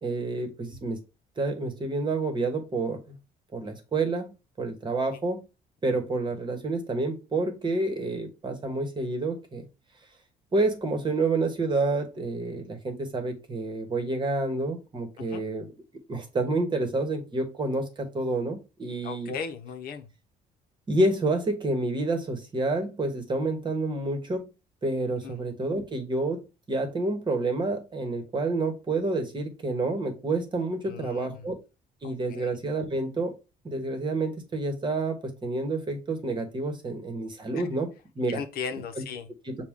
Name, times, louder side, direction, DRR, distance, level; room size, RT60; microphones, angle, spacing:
voice 1, 0.0-1.0 1.4-3.1 3.5-4.3 4.6-5.4 5.8-9.6 10.5-15.7 16.1-19.3 20.9-24.5 24.8-31.6 32.0-33.4 33.6-35.2 35.4-37.9 38.1-38.4 39.4-39.6, right 2 dB, 25° right, 1.2 m, -29 dB
voice 2, 19.0-20.1 25.2-25.4 30.9-31.5 32.0-32.5 37.5-37.7 38.3-39.3, left 6 dB, 65° left, 0.8 m, -37 dB
5.9 x 2.3 x 3.6 m
cardioid pair, 110°, 17 cm